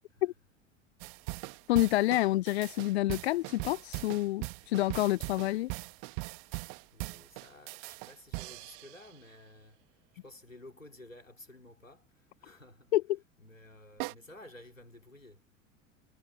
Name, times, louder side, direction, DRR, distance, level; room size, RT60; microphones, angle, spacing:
sound 1, 1.0-9.2 14.0-14.1, right 40 dB or more, 45° right, 1.6 m, -40 dB
voice 1, 1.7-5.7 12.9-13.2, left 16 dB, 55° left, 0.6 m, -28 dB
voice 2, 6.5-9.8 10.2-12.9 13.4-15.6, left 1 dB, 90° left, 2.8 m, -54 dB
figure-of-eight pair, 80°, 38 cm